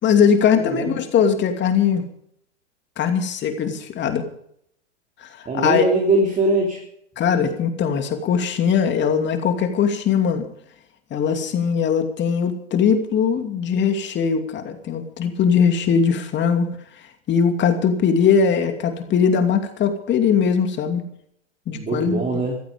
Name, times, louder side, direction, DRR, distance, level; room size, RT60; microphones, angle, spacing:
voice 1, 0.0-2.0 3.0-4.3 5.2-5.8 7.2-10.4 11.1-16.7 17.3-21.0 21.7-22.2, left 7 dB, 30° left, 6 dB, 2.7 m, -20 dB
voice 2, 0.5-1.0 5.4-6.8 21.7-22.6, right 2 dB, 20° right, 0 dB, 3.4 m, -22 dB
15.5 x 14.5 x 5.3 m, 0.69 s
hypercardioid pair, 110°, 36 cm